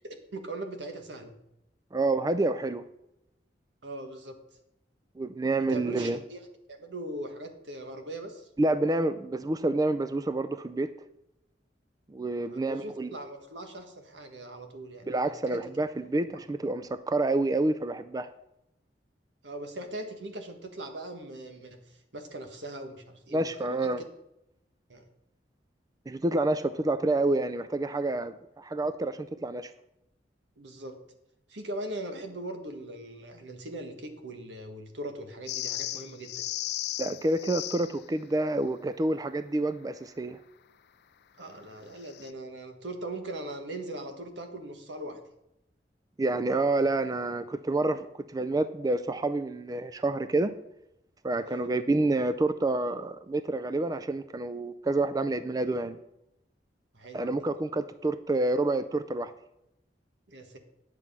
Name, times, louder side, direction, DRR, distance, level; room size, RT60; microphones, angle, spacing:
voice 1, 0.0-1.3 3.8-4.4 5.7-8.5 12.5-15.6 16.3-16.4 19.4-23.9 24.9-25.0 30.6-31.0 31.5-36.4 41.4-45.2 51.4-51.7 56.9-57.4 60.3-60.6, right 1 dB, 90° right, 5 dB, 1.5 m, -40 dB
voice 2, 1.9-2.8 5.2-6.2 8.6-10.9 12.1-13.1 15.1-18.3 23.3-24.0 26.1-29.7 37.0-40.4 46.2-50.5 51.2-56.0 57.1-59.3, right 2 dB, 20° right, 12 dB, 0.4 m, -28 dB
sound 1, 35.5-38.0 42.0-42.3, left 14 dB, 65° left, 0.4 m, -35 dB
9.8 x 7.3 x 5.5 m, 0.85 s
head